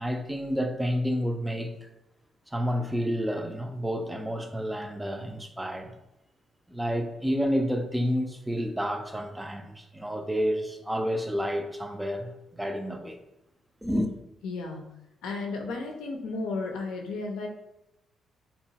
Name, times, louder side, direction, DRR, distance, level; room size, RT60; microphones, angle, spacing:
voice 1, 0.0-1.7 2.5-5.9 6.7-13.2 13.8-14.1, equal, 10° right, 0.3 m, -30 dB
voice 2, 14.4-14.8 15.2-17.5, left 3 dB, 85° left, 0.5 m, -33 dB
2.8 x 2.0 x 2.8 m
cardioid pair, 90°, 0 cm